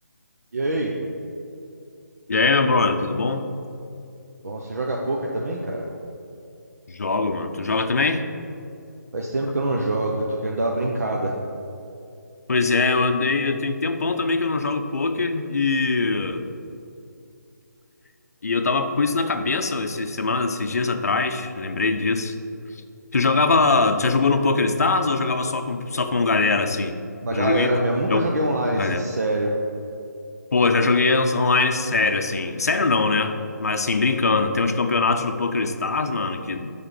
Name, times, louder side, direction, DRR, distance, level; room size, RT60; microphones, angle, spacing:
voice 1, 0.5-1.0 4.4-5.8 9.1-11.4 27.2-29.5, right 1 dB, 55° right, -1 dB, 0.9 m, -25 dB
voice 2, 2.3-3.5 6.9-8.2 12.5-16.5 18.4-22.3 23.1-27.0 27.3-27.8 28.1-28.3 28.7-29.1 30.5-36.7, left 3 dB, 55° left, 7 dB, 0.7 m, -22 dB
9.8 x 3.7 x 6.9 m, 2.6 s
hypercardioid pair, 175°, 10 cm